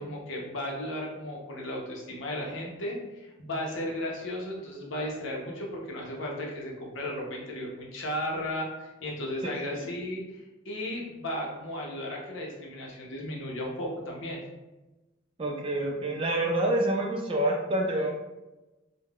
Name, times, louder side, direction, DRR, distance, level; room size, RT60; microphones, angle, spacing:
voice 1, 0.0-14.4, left 1 dB, 60° left, -2 dB, 0.7 m, -35 dB
voice 2, 9.4-9.9 15.4-18.1, right 1 dB, 25° right, 0 dB, 0.3 m, -28 dB
3.5 x 2.1 x 2.3 m, 1.1 s
head